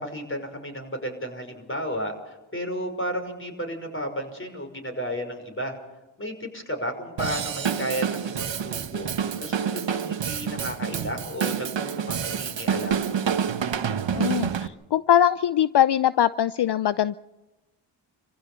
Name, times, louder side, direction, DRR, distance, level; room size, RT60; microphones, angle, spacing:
voice 1, 0.0-5.8 6.2-9.1 9.4-13.1, equal, 25° left, 4 dB, 5.7 m, -33 dB
Drum kit / Drum, 7.2-14.7, right 7 dB, 60° right, 1.4 m, -28 dB
voice 2, 14.1-17.2, left 10 dB, 55° left, 16 dB, 0.6 m, -22 dB
25.5 x 15.5 x 7.0 m, 1.1 s
cardioid pair, 45°, 50 cm